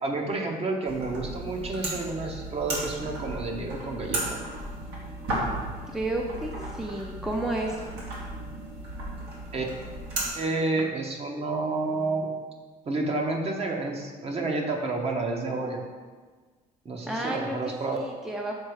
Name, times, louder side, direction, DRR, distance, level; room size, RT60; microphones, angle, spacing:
voice 1, 0.0-4.4 9.5-9.6 10.3-12.3 12.9-15.8 16.8-18.0, right 3 dB, 35° right, 2 dB, 1.0 m, -30 dB
sound 1, 0.9-10.3, right 1 dB, 75° right, 1.9 m, -35 dB
voice 2, 5.9-7.8 17.1-18.5, right 1 dB, 5° right, 0 dB, 0.5 m, -31 dB
6.5 x 4.1 x 4.8 m, 1.4 s
cardioid pair, 110°, 17 cm